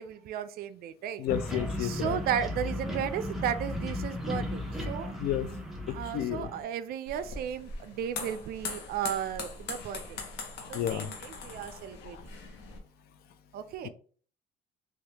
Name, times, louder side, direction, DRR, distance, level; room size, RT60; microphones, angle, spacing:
voice 1, 0.0-1.2 1.8-4.6 4.9-5.1 5.9-10.0 10.7-12.2 13.5-13.9, right 9 dB, 65° right, 0.4 m, -34 dB
voice 2, 1.2-2.2 5.2-5.5 5.9-6.5 10.6-11.5 12.0-12.2 13.8-13.9, left 11 dB, 65° left, 0.4 m, -32 dB
sound 1, 1.3-6.6, left 1 dB, ahead, 0.7 m, -35 dB
sound 2, 7.1-12.8, left 4 dB, 85° left, 0.8 m, -41 dB
3.3 x 2.4 x 2.8 m
cardioid pair, 110°, 17 cm